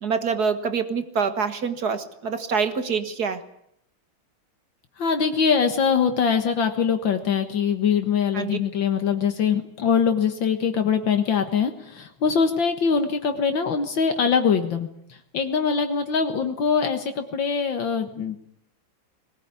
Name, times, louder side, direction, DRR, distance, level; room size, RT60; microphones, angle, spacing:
voice 1, 0.0-3.4 8.3-8.6, right 5 dB, 55° right, 10 dB, 2.0 m, -25 dB
voice 2, 5.0-18.4, left 6 dB, 75° left, 6 dB, 2.2 m, -23 dB
20.5 x 19.0 x 9.7 m, 0.75 s
omnidirectional pair, 2.1 m